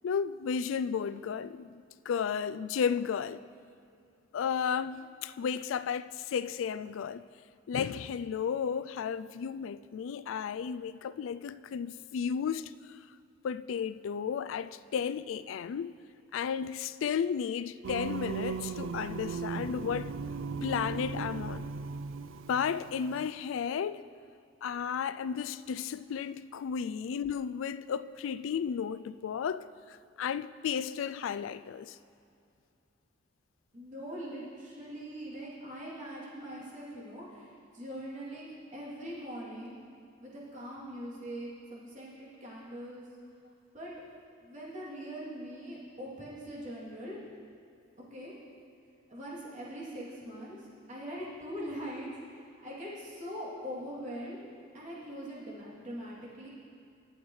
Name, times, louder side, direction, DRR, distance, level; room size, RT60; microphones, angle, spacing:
voice 1, 0.0-3.4 4.3-7.2 7.7-13.0 13.4-15.9 16.3-20.1 20.6-21.7 22.5-24.1 24.6-32.0, left 7 dB, 80° left, 0.3 m, -33 dB
Singing, 17.8-23.3, right 5 dB, 90° right, 0.4 m, -37 dB
voice 2, 33.7-39.7 40.2-43.0 43.7-43.9 44.4-47.2 48.1-48.3 49.1-54.5 54.7-56.5, equal, 40° right, 2.9 m, -42 dB
20.5 x 7.9 x 3.2 m
head